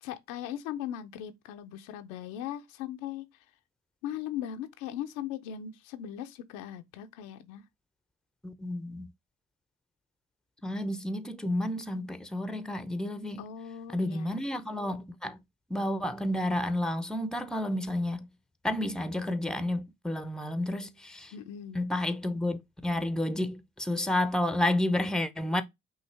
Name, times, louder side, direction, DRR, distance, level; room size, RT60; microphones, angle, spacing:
voice 1, 0.0-3.3 4.0-7.6 13.4-14.4 21.3-21.8, left 10 dB, 80° left, 0.7 m, -39 dB
voice 2, 8.4-9.1 10.6-13.4 13.9-15.4 15.7-18.3 18.6-21.3 21.7-25.6, left 1 dB, ahead, 0.7 m, -31 dB
5.4 x 2.7 x 3.3 m
hypercardioid pair, 50°, 30 cm